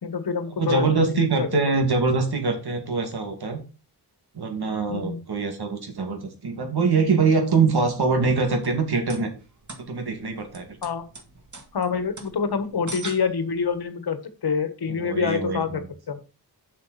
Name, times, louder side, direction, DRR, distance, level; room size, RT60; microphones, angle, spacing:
voice 1, 0.0-1.5 4.9-5.2 10.8-11.1 11.7-15.8 16.1-16.2, left 5 dB, 70° left, 11 dB, 1.4 m, -26 dB
voice 2, 0.6-3.6 4.3-9.3 9.9-10.6 14.9-15.8, right 4 dB, 70° right, 5 dB, 2.3 m, -23 dB
sound 1, 8.4-13.8, right 3 dB, 45° right, 2.1 m, -42 dB
7.1 x 6.2 x 4.1 m, 0.33 s
cardioid pair, 70°, 40 cm